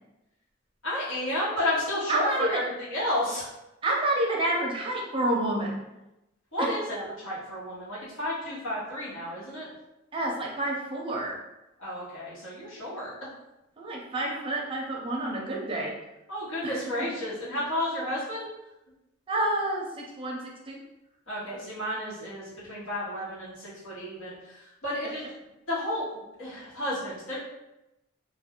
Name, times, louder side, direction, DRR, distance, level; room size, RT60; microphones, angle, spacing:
voice 1, 0.8-3.5 6.5-9.7 11.8-13.1 16.3-18.4 21.3-25.2 25.7-26.0 26.4-27.4, left 1 dB, 75° left, -9 dB, 1.2 m, -32 dB
voice 2, 2.1-2.6 3.8-5.8 6.6-6.7 10.1-11.4 13.8-15.9 16.6-16.8 19.3-20.8, right 1 dB, 25° right, -2 dB, 0.5 m, -29 dB
2.5 x 2.1 x 3.5 m, 0.94 s
head